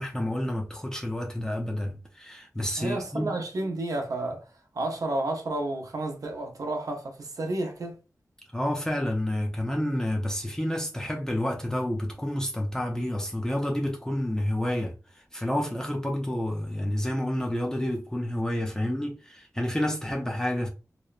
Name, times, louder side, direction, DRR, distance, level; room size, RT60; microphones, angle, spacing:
voice 1, 0.0-3.3 8.5-20.7, left 1 dB, 10° left, 0.4 m, -29 dB
voice 2, 2.8-4.5 4.7-8.0, right 2 dB, 70° right, 0.6 m, -31 dB
2.8 x 2.0 x 2.3 m
wide cardioid pair, 95°, 6 cm